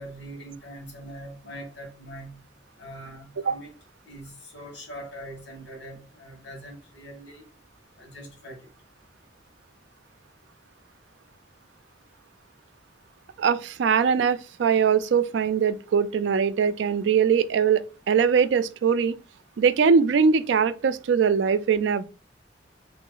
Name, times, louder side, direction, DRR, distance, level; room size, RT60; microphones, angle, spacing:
voice 1, 0.0-2.4 2.8-3.7 4.1-7.4 8.0-8.7, right 1 dB, 80° left, 1.7 m, -42 dB
voice 2, 13.4-19.2 19.6-22.0, right 6 dB, 85° right, 0.4 m, -22 dB
3.2 x 2.8 x 3.8 m
head